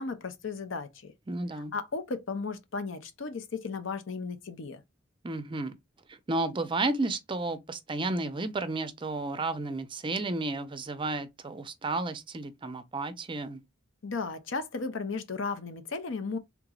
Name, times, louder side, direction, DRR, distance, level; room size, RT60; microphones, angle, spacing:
voice 1, 0.0-1.1 1.7-4.8 14.0-16.4, left 4 dB, 65° left, 0.6 m, -35 dB
voice 2, 1.3-1.7 5.2-5.7 6.1-13.6, right 2 dB, 25° right, 0.5 m, -32 dB
3.5 x 3.0 x 2.3 m
head